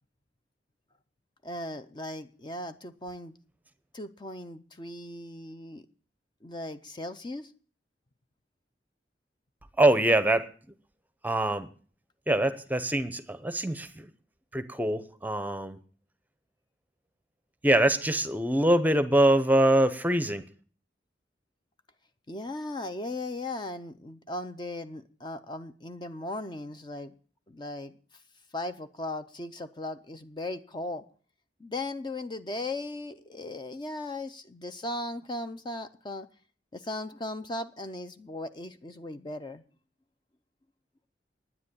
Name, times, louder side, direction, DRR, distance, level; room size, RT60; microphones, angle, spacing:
voice 1, 1.4-3.3 3.9-5.8 6.4-7.5 22.3-27.1 27.5-28.2 28.5-31.0 31.6-36.3 36.7-39.6, left 2 dB, 25° left, 0.6 m, -37 dB
voice 2, 9.8-10.5 11.2-11.7 12.3-14.1 14.5-15.8 17.6-20.4, right 1 dB, 10° right, 0.8 m, -24 dB
10.0 x 9.6 x 8.4 m
head